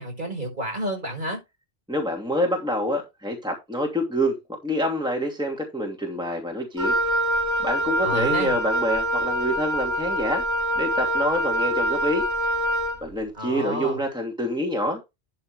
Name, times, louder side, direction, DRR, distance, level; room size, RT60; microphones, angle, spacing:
voice 1, 0.0-1.4 8.0-8.6 13.3-14.0, right 1 dB, 50° right, 5.3 m, -30 dB
voice 2, 1.9-4.4 4.6-7.0 7.6-10.4 10.8-12.2 13.0-15.0, equal, 5° right, 2.7 m, -26 dB
Wind instrument woodwind instrument, 6.8-13.0, right 1 dB, 70° right, 2.6 m, -25 dB
12.0 x 7.6 x 3.3 m
omnidirectional pair, 1.1 m